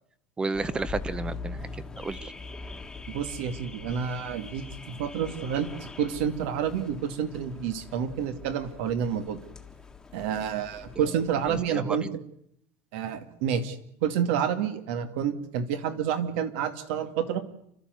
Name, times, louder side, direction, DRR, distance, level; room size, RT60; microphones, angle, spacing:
voice 1, 0.4-2.3 11.7-12.2, right 3 dB, 15° right, 17 dB, 0.8 m, -32 dB
Car / Alarm, 0.5-11.7, left 4 dB, 10° left, 1.5 m, -42 dB
voice 2, 3.1-9.4 10.1-12.1 12.9-17.4, right 8 dB, 75° right, 10 dB, 2.3 m, -29 dB
30.0 x 13.0 x 8.0 m, 0.72 s
cardioid pair, 150°, 6 cm